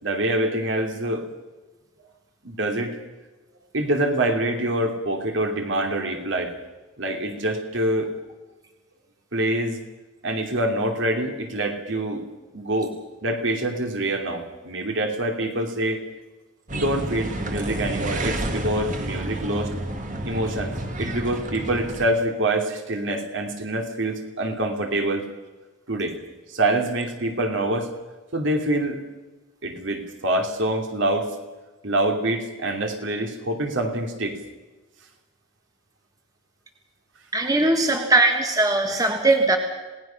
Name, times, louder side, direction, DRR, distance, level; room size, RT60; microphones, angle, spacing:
voice 1, 0.0-1.3 2.4-2.9 3.7-6.5 7.0-8.1 9.3-9.8 10.2-12.2 12.5-12.9 13.2-16.0 16.7-19.7 20.2-25.3 25.9-26.2 26.5-27.9 28.3-29.0 29.6-31.3 31.8-34.4, right 1 dB, 60° right, 4 dB, 2.9 m, -25 dB
sound 1, 16.7-22.1, right 1 dB, 35° right, 2.0 m, -30 dB
voice 2, 37.3-39.6, right 2 dB, 15° right, 3 dB, 1.6 m, -20 dB
27.5 x 18.0 x 5.9 m, 1.2 s
head